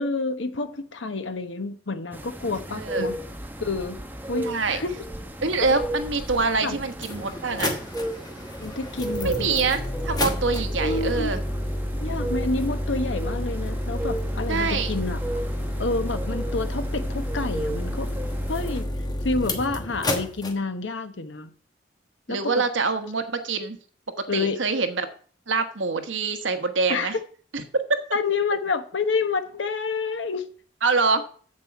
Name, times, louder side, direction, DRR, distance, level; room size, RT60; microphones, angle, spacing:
voice 1, 0.0-3.1 3.6-4.0 4.3-4.9 6.6-6.8 8.6-9.6 10.8-11.3 12.0-15.2 15.8-18.1 18.5-18.9 19.2-21.5 22.3-22.6 24.3-24.6 26.9-27.2 28.1-30.5, left 3 dB, 80° left, 9 dB, 1.0 m, -28 dB
sound 1, 2.1-18.8, right 1 dB, 10° right, 1.0 m, -35 dB
voice 2, 2.7-3.1 4.4-4.8 5.4-7.8 9.2-11.4 14.5-14.9 22.3-23.8 24.2-25.1 25.5-27.2 27.5-27.6 27.9-28.1 30.8-31.3, right 4 dB, 90° right, 8 dB, 1.2 m, -25 dB
sound 2, 6.3-6.4 6.9-20.5, left 1 dB, 20° left, 1.2 m, -29 dB
7.6 x 7.5 x 5.9 m, 0.44 s
head